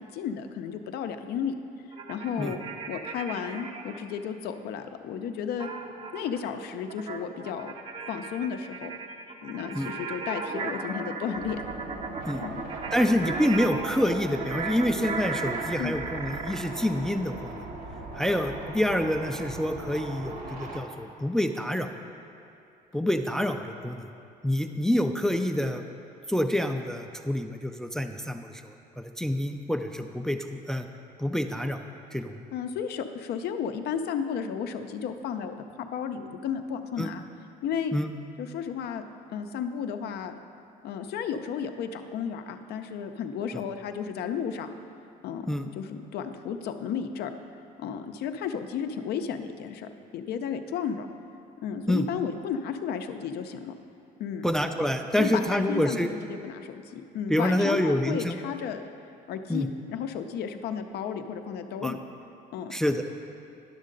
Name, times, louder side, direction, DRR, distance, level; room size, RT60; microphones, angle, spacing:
voice 1, 0.0-1.6 2.1-2.6 2.9-5.7 6.1-7.7 8.1-8.9 9.4-11.6 12.4-12.6 15.8-15.9 32.5-37.2 37.6-37.9 38.4-39.0 39.3-40.3 40.8-44.7 45.2-47.4 47.8-51.1 51.6-53.7 54.2-54.5 55.2-58.8 59.3-62.0 62.5-62.7, left 7 dB, 70° left, 7 dB, 0.5 m, -33 dB
sound 1, 1.9-4.0 5.6-16.7, right 4 dB, 40° right, 0.6 m, -37 dB
sound 2, 11.3-20.8, right 2 dB, 60° right, 1.2 m, -39 dB
voice 2, 12.9-17.6 18.1-21.9 22.9-24.1 24.4-25.8 26.3-30.9 31.2-31.8 32.1-32.4 37.0-37.1 37.9-38.1 43.5-43.6 45.5-45.6 51.9-52.0 54.4-56.1 57.3-58.4 59.5-59.7 61.8-62.0 62.7-63.0, left 1 dB, 5° left, 6 dB, 0.3 m, -27 dB
10.5 x 6.4 x 3.9 m, 2.6 s
cardioid pair, 110°, 17 cm